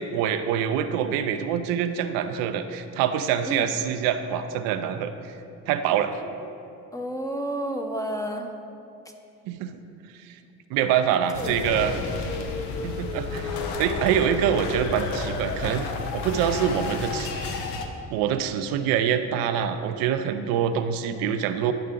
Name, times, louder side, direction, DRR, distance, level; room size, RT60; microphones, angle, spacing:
voice 1, 0.0-5.3 5.7-6.2 9.5-9.8 10.2-10.4 10.7-12.0 12.8-15.9 16.1-17.6 18.1-21.7, right 9 dB, 85° right, 8 dB, 0.5 m, -25 dB
voice 2, 6.9-8.5 11.4-11.5 12.0-12.1, right 1 dB, 10° left, 3 dB, 0.8 m, -31 dB
sound 1, 11.3-17.9, left 4 dB, 90° left, 0.8 m, -31 dB
10.5 x 5.5 x 3.7 m, 2.5 s
supercardioid pair, 85°, 34 cm